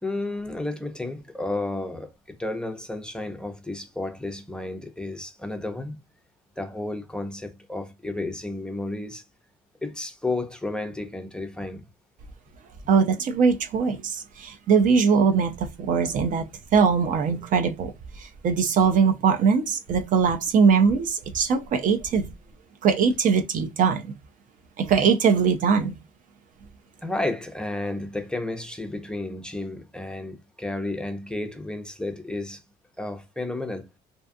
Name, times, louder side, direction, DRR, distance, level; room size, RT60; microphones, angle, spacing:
voice 1, 0.0-6.0 6.6-9.2 9.8-11.8 27.0-32.6 33.0-33.9, left 2 dB, 5° left, 0.5 m, -32 dB
voice 2, 12.9-16.5 16.7-17.9 18.4-22.3 22.8-24.0 24.8-25.9, right 6 dB, 50° right, 0.4 m, -21 dB
2.5 x 2.3 x 2.5 m
cardioid pair, 110°, 17 cm